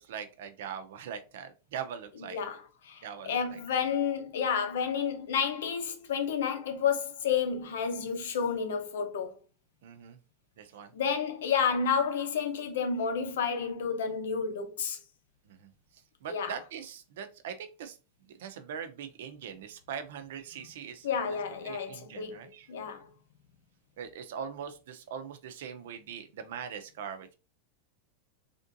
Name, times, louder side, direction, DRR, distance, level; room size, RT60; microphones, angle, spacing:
voice 1, 0.0-2.4 3.0-3.6 9.8-10.2 10.6-10.9 15.5-15.7 16.2-18.0 18.4-22.7 24.0-27.3, right 7 dB, 70° right, 0.5 m, -41 dB
voice 2, 2.2-9.4 10.9-15.0 16.3-16.6 21.0-23.1, left 6 dB, 90° left, 0.7 m, -31 dB
3.5 x 2.5 x 2.6 m
supercardioid pair, 170°, 0 cm